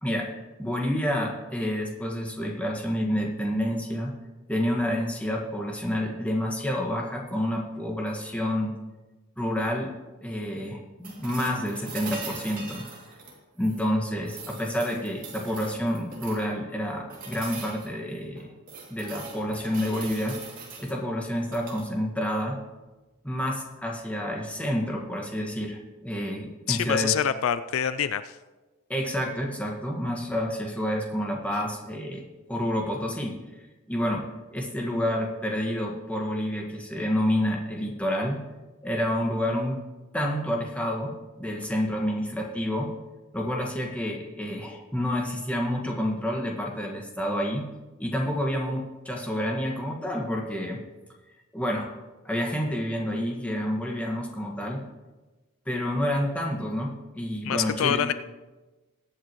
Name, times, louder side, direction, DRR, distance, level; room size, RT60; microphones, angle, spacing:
voice 1, 0.0-4.1 4.5-8.8 9.4-9.9 10.2-12.8 13.6-18.5 18.9-20.4 20.8-22.6 23.2-27.1 28.9-33.4 33.9-38.4 38.8-39.8 40.1-42.9 43.3-47.7 48.0-50.8 51.5-51.9 52.3-54.8 55.7-58.1, equal, 5° left, -1 dB, 1.6 m, -29 dB
sound 1, 11.0-13.9 14.2-16.5 17.1-17.9 18.3-20.9 21.4-21.9 23.9-24.0, right 4 dB, 40° right, 2.6 m, -41 dB
voice 2, 26.7-28.3 57.4-58.1, left 8 dB, 65° left, 13 dB, 0.4 m, -26 dB
21.5 x 8.7 x 3.1 m, 1.2 s
head